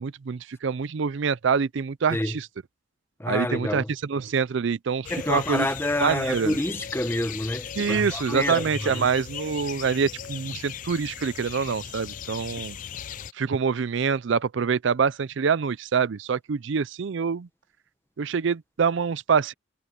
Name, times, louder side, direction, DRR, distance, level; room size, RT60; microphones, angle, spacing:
voice 1, 0.0-2.5 3.3-5.7 6.0-6.6 7.8-12.8 13.3-17.5 18.2-19.5, right 6 dB, 60° right, 0.4 m, -25 dB
voice 2, 3.2-3.9 5.1-9.1, left 1 dB, 10° left, 1.0 m, -28 dB
sound 1, 5.0-13.3, left 9 dB, 40° left, 0.3 m, -38 dB
head